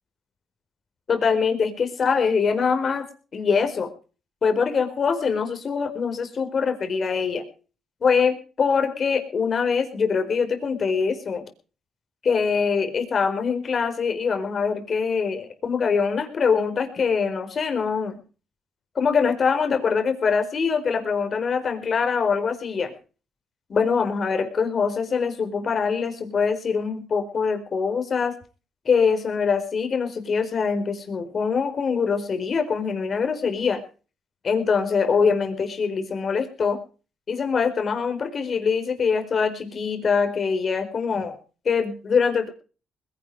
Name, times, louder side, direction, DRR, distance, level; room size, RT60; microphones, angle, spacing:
voice 1, 1.1-3.1 3.3-3.9 4.4-7.4 8.0-11.4 12.2-18.2 18.9-22.9 23.7-28.3 28.8-33.8 34.4-36.8 37.3-41.4 41.6-42.5, left 5 dB, 45° left, 7 dB, 4.4 m, -23 dB
20.5 x 11.0 x 4.8 m, 0.37 s
cardioid pair, 90°, 0 cm